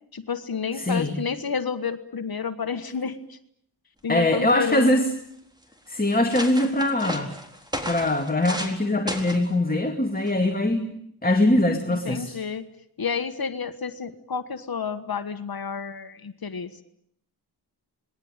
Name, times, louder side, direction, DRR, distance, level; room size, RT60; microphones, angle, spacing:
voice 1, 0.1-3.4 4.0-5.0 11.9-12.6 13.0-16.8, left 6 dB, 60° left, 9 dB, 1.5 m, -30 dB
voice 2, 0.8-1.2 4.1-5.1 5.9-7.3 7.9-10.9 11.2-12.4, left 1 dB, 20° left, 4 dB, 2.4 m, -22 dB
sound 1, 4.5-5.1 5.7-5.8 6.1-8.8 9.1-9.5 10.3-10.5, equal, 10° right, 4.1 m, -34 dB
26.5 x 20.5 x 9.0 m, 0.70 s
wide cardioid pair, 75°, 40 cm